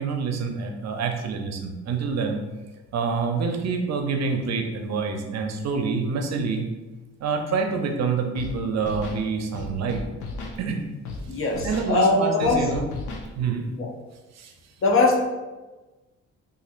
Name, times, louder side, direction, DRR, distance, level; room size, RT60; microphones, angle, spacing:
voice 1, 0.0-2.4 2.9-6.7 7.2-10.0 10.6-10.8 11.6-12.8 13.4-13.7 14.3-14.5, right 5 dB, 60° right, 4 dB, 0.6 m, -27 dB
Scratching (performance technique), 8.3-8.5 8.8-9.2 9.5-10.6 11.0-11.2 11.5-11.9 12.4-13.3, left 3 dB, 85° left, 0.7 m, -35 dB
voice 2, 11.3-12.7 13.8-13.9 14.8-15.2, left 3 dB, 45° left, 1 dB, 0.8 m, -21 dB
4.2 x 2.6 x 2.5 m, 1.2 s
cardioid pair, 90°, 30 cm